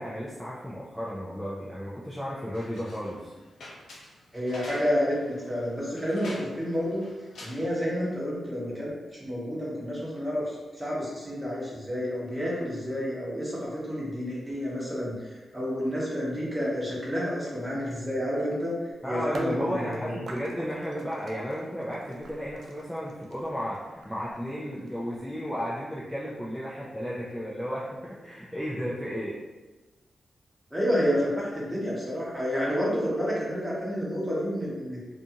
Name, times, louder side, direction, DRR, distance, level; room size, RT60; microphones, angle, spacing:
voice 1, 0.0-3.3 19.0-29.4, equal, 5° left, -7 dB, 0.4 m, -34 dB
sound 1, 2.5-8.1, left 1 dB, 85° left, 0.6 m, -47 dB
voice 2, 4.3-7.0 7.4-18.7 19.1-20.2 30.7-35.0, equal, 10° right, -6 dB, 0.9 m, -30 dB
sound 2, 19.3-25.2, right 2 dB, 70° right, 0.3 m, -43 dB
2.6 x 2.4 x 2.7 m, 1.2 s
cardioid pair, 95°, 0 cm